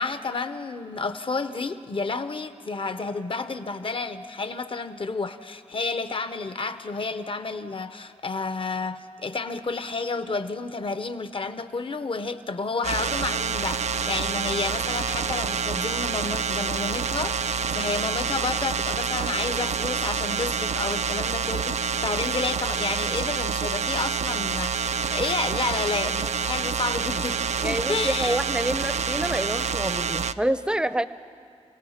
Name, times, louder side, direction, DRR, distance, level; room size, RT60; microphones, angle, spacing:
voice 1, 0.0-28.4, left 3 dB, 50° left, 10 dB, 0.9 m, -31 dB
sound 1, 12.8-30.3, right 6 dB, 75° right, 0.4 m, -27 dB
voice 2, 27.6-31.0, right 1 dB, 5° right, 13 dB, 0.6 m, -27 dB
28.0 x 18.0 x 5.8 m, 2.3 s
wide cardioid pair, 70°, 12 cm